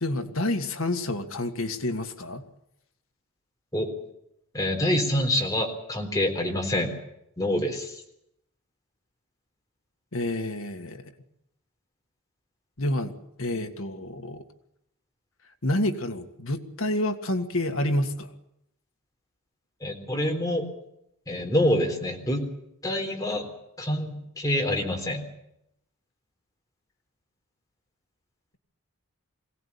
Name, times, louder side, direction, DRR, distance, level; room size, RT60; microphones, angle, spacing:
voice 1, 0.0-2.4 10.1-11.0 12.8-14.4 15.6-18.3, left 1 dB, 60° left, 6 dB, 1.9 m, -28 dB
voice 2, 4.5-6.9 7.4-7.9 19.8-20.7 21.3-22.5 22.8-23.5 23.8-25.2, left 1 dB, 15° left, 2 dB, 3.9 m, -26 dB
22.5 x 17.5 x 8.6 m, 0.81 s
head